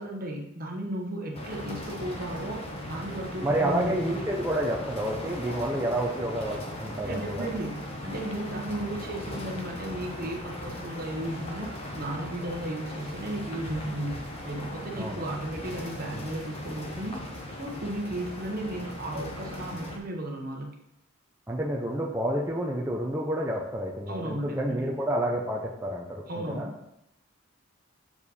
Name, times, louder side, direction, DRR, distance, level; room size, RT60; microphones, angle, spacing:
voice 1, 0.0-4.0 7.0-17.2 17.6-20.7 24.1-24.9 26.2-26.7, right 1 dB, 45° right, 1 dB, 1.2 m, -35 dB
sound 1, 1.3-20.0, left 1 dB, 30° left, 0.9 m, -38 dB
voice 2, 3.4-7.4 14.9-15.2 21.5-26.7, right 1 dB, 10° right, -3 dB, 0.6 m, -29 dB
6.9 x 5.1 x 4.2 m, 0.82 s
head